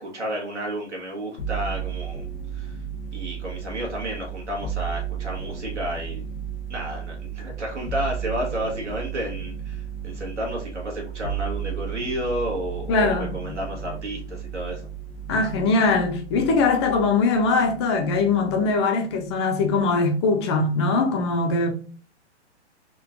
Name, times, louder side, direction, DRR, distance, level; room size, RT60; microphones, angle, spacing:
voice 1, 0.0-2.3 2.5-2.8 3.1-6.2 6.7-14.9, equal, 80° right, 1.5 m, -31 dB
sound 1, 1.4-18.8 19.1-19.9, right 8 dB, 85° left, 0.7 m, -34 dB
voice 2, 12.9-13.3 15.3-21.7, left 3 dB, 25° left, 0.5 m, -21 dB
3.7 x 2.4 x 3.6 m
figure-of-eight pair, 120°, 35 cm